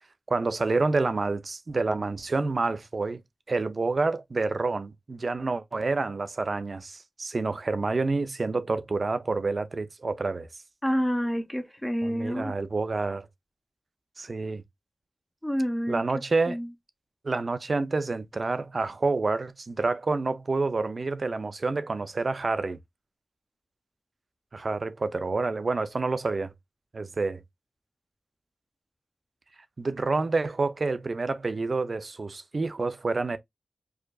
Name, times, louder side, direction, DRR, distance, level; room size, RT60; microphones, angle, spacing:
voice 1, 0.3-3.2 3.5-10.5 12.0-13.3 14.2-14.6 15.9-16.6 17.2-22.8 24.5-26.5 26.9-27.4 29.8-33.4, right 3 dB, 50° right, 0.5 m, -28 dB
voice 2, 10.8-12.5 15.4-16.0 16.5-16.7, equal, 10° left, 0.7 m, -28 dB
4.8 x 2.5 x 2.2 m
wide cardioid pair, 75°, 0 cm